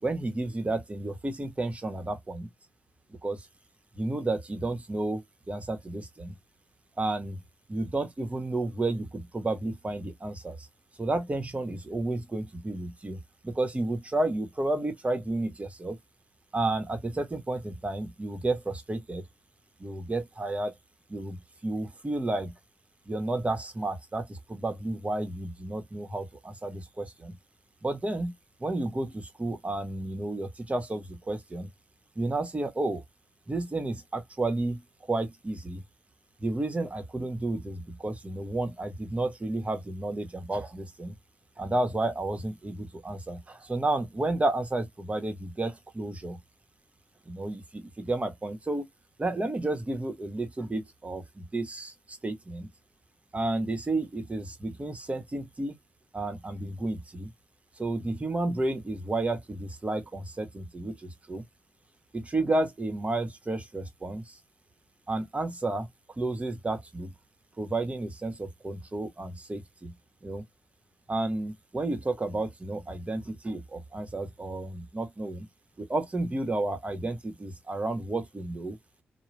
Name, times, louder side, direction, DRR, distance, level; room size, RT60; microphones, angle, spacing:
voice 1, 0.0-2.5 3.2-3.5 3.9-6.4 7.0-7.4 7.7-10.7 11.0-16.0 16.5-19.2 19.8-20.8 21.1-22.5 23.1-27.3 27.8-28.3 28.6-31.7 32.1-33.0 33.5-34.8 35.1-35.8 36.4-41.1 41.6-46.4 47.3-48.9 49.2-52.7 53.3-55.8 56.1-57.3 57.8-61.4 62.1-64.4 65.1-65.9 66.2-67.1 67.6-69.9 70.2-70.4 71.1-75.5 75.8-78.8, right 2 dB, 30° right, 1.2 m, -31 dB
2.4 x 2.3 x 3.2 m
supercardioid pair, 50°, 5 cm